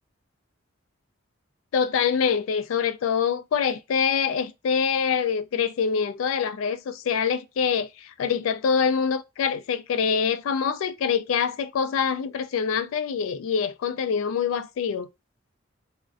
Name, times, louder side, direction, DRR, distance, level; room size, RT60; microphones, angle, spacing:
voice 1, 1.7-15.1, left 6 dB, 75° left, 0.3 m, -25 dB
2.4 x 2.1 x 2.4 m
head